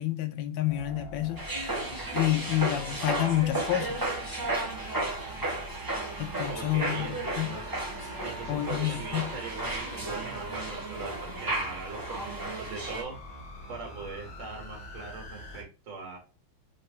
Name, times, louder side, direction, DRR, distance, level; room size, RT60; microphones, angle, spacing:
voice 1, 0.0-1.5 2.1-4.2 6.2-7.5 8.5-9.3, left 14 dB, 75° left, 1.2 m, -29 dB
sound 1, 0.7-15.6, equal, 45° left, 2.6 m, -44 dB
sound 2, 1.4-13.0, right 2 dB, 30° right, 0.3 m, -34 dB
voice 2, 6.5-7.7 8.2-13.2 13.7-16.2, right 4 dB, 70° right, 2.2 m, -41 dB
6.7 x 2.9 x 2.7 m
omnidirectional pair, 2.3 m